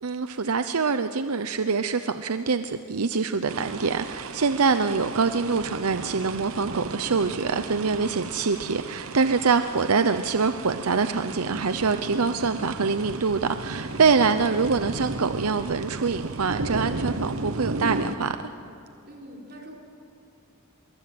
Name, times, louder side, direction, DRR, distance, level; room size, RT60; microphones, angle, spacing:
voice 1, 0.0-18.4, right 5 dB, 85° right, 10 dB, 0.7 m, -25 dB
sound 1, 3.5-18.2, right 3 dB, 70° right, 1.1 m, -34 dB
voice 2, 14.4-14.7 19.0-19.8, equal, 50° right, 0 dB, 4.4 m, -44 dB
24.5 x 22.5 x 7.8 m, 2.7 s
head